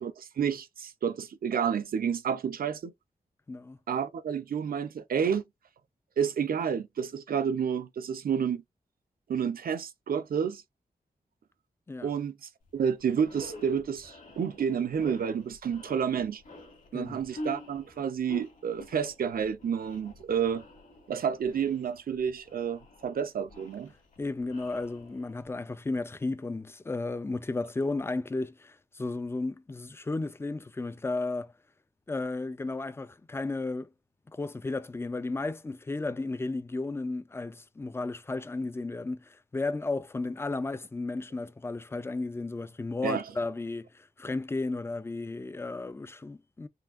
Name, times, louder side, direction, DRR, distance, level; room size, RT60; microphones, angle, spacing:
voice 1, 0.0-2.9 3.9-5.5 6.2-8.6 9.3-10.6 12.0-16.4 16.9-20.6 21.1-23.9 43.0-43.2, right 7 dB, 75° right, 0.6 m, -30 dB
voice 2, 3.5-3.8 11.9-12.1 16.9-17.2 24.2-31.5 32.1-33.9 34.3-46.7, left 3 dB, 15° left, 0.3 m, -34 dB
sound 1, 12.7-12.8 13.2-25.5, equal, 60° left, 1.7 m, -46 dB
5.7 x 2.6 x 2.4 m
wide cardioid pair, 180°, 15 cm